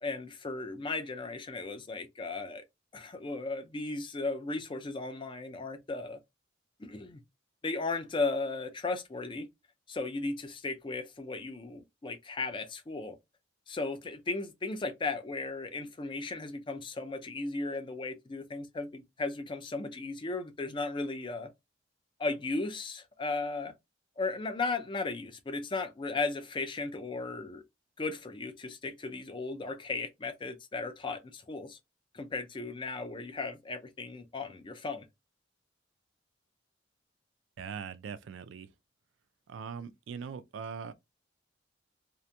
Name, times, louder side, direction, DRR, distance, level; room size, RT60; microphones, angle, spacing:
voice 1, 0.0-2.6 2.9-6.2 6.8-7.2 7.6-9.5 9.9-13.2 13.7-21.5 22.2-23.7 24.2-27.6 28.0-31.8 32.1-35.1, left 3 dB, 25° left, 0.4 m, -36 dB
voice 2, 37.6-38.7 39.5-40.9, right 6 dB, 75° right, 0.3 m, -41 dB
2.8 x 2.5 x 2.2 m
head